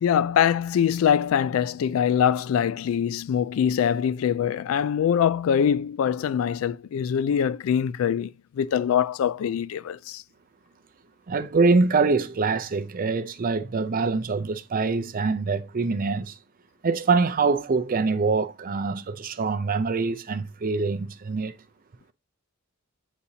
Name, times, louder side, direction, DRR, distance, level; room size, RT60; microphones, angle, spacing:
voice 1, 0.0-10.2, left 8 dB, 75° left, 0.3 m, -23 dB
voice 2, 11.3-16.4 16.8-21.5, right 4 dB, 45° right, 0.5 m, -24 dB
8.2 x 4.1 x 2.7 m
head